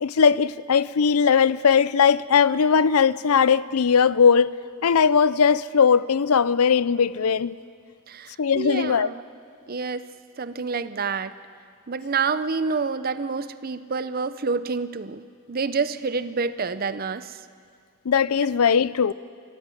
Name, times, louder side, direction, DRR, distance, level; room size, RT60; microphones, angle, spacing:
voice 1, 0.0-4.5 4.8-7.5 8.4-9.1 18.1-19.1, left 6 dB, 85° left, 0.5 m, -19 dB
voice 2, 8.1-9.2 9.7-10.0 10.4-11.3 11.9-15.2 15.5-17.4, right 4 dB, 45° right, 0.6 m, -28 dB
24.5 x 14.0 x 9.2 m
head